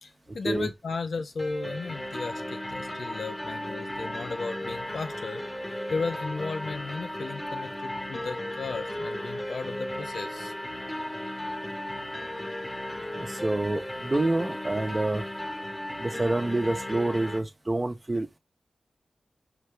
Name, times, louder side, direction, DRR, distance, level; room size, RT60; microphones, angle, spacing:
voice 1, 0.0-10.5, left 4 dB, 80° left, 0.6 m, -35 dB
sound 1, 1.4-17.4, left 1 dB, 20° left, 1.1 m, -35 dB
voice 2, 13.1-15.2 16.0-18.4, right 2 dB, 35° right, 1.0 m, -27 dB
5.0 x 2.7 x 3.3 m
cardioid pair, 45°, 0 cm